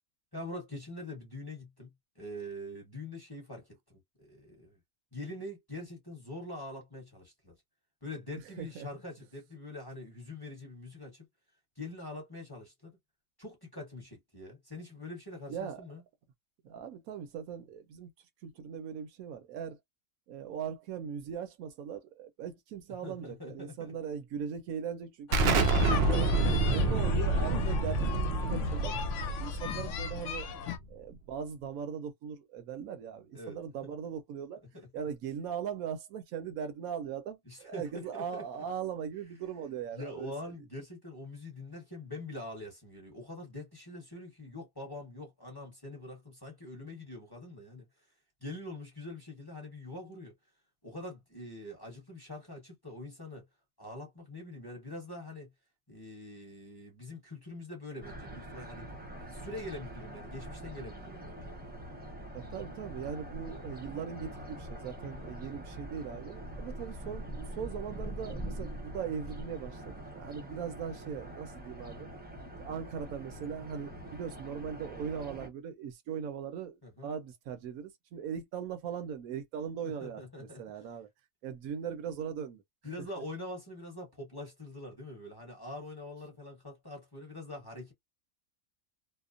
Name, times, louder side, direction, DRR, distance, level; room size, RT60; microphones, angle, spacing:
voice 1, 0.3-3.8 4.2-4.8 5.1-7.6 8.0-11.3 11.8-13.0 13.4-16.0 23.0-23.9 26.8-27.0 33.3-33.9 34.7-34.9 37.5-38.6 39.9-47.9 48.4-50.4 50.8-53.5 53.8-55.5 55.9-58.9 59.3-61.6 65.0-65.3 76.8-77.1 79.8-80.9 82.8-87.9, left 1 dB, 20° left, 0.9 m, -44 dB
voice 2, 8.6-8.9 15.5-15.8 16.6-18.1 18.4-19.8 20.3-26.3 26.7-28.9 29.2-30.5 30.9-34.6 34.9-40.3 62.3-72.1 72.6-81.1 81.4-82.6, right 7 dB, 80° right, 1.1 m, -39 dB
sound 1, 25.3-30.8, left 7 dB, 70° left, 0.9 m, -37 dB
Explosion, 25.3-30.8, right 2 dB, 60° right, 0.6 m, -28 dB
sound 2, 58.0-75.5, right 1 dB, 10° right, 0.5 m, -44 dB
2.8 x 2.0 x 2.4 m
omnidirectional pair, 1.5 m